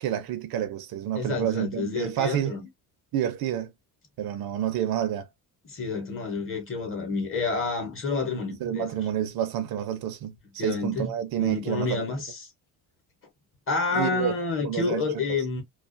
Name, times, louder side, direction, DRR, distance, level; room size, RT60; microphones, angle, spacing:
voice 1, 0.0-2.6 3.1-3.7 4.2-5.3 8.6-12.1 13.9-14.3 14.6-15.2, right 10 dB, 65° right, 0.6 m, -29 dB
voice 2, 1.1-2.6 5.6-8.9 10.6-11.1 11.4-12.4 13.7-15.6, left 4 dB, 35° left, 0.9 m, -29 dB
2.3 x 2.3 x 2.4 m
cardioid pair, 160°, 39 cm